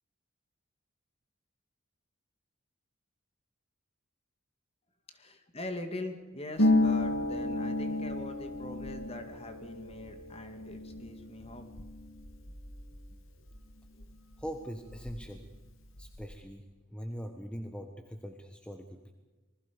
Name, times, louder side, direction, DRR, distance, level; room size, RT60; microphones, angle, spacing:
voice 1, 5.1-11.7, left 1 dB, 30° left, 7 dB, 2.2 m, -42 dB
Harp, 6.6-14.0 14.3-15.4 15.7-16.3, left 2 dB, 70° left, 2.5 m, -32 dB
voice 2, 14.4-15.4 16.0-16.6 16.9-19.1, equal, 5° left, 5 dB, 1.3 m, -42 dB
27.0 x 21.0 x 5.2 m, 1.2 s
head